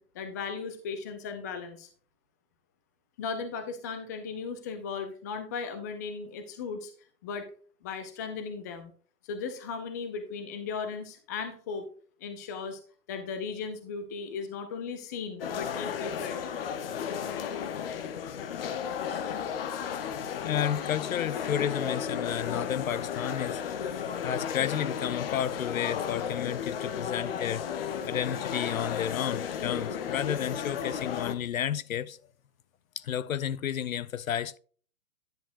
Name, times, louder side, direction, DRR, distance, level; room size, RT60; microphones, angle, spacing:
voice 1, 0.0-1.9 3.2-6.9 7.2-7.5 7.8-8.9 9.2-11.9 12.2-12.8 13.1-16.4, left 5 dB, 10° left, 0.5 m, -37 dB
sound 1, 15.4-31.3, left 8 dB, 40° left, 0.8 m, -34 dB
voice 2, 20.4-23.9 24.2-27.7 28.1-32.2 33.0-34.6, left 9 dB, 60° left, 0.6 m, -32 dB
10.5 x 7.2 x 2.5 m
hypercardioid pair, 135°, 46 cm